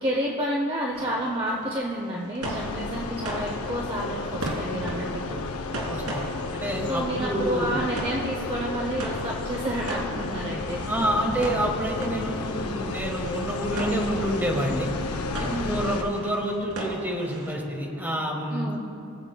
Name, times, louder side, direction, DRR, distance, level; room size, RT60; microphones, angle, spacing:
voice 1, 0.0-5.4 6.9-10.8 15.5-15.8 18.5-18.8, right 1 dB, 25° right, -1 dB, 0.7 m, -30 dB
sound 1, 0.9-18.0, right 1 dB, 85° right, 1.7 m, -38 dB
sound 2, 2.4-16.0, left 3 dB, 75° left, 0.6 m, -32 dB
voice 2, 5.9-7.8 10.8-14.9 15.4-18.8, equal, 10° right, -1 dB, 1.4 m, -28 dB
21.0 x 7.6 x 2.2 m, 2.6 s
head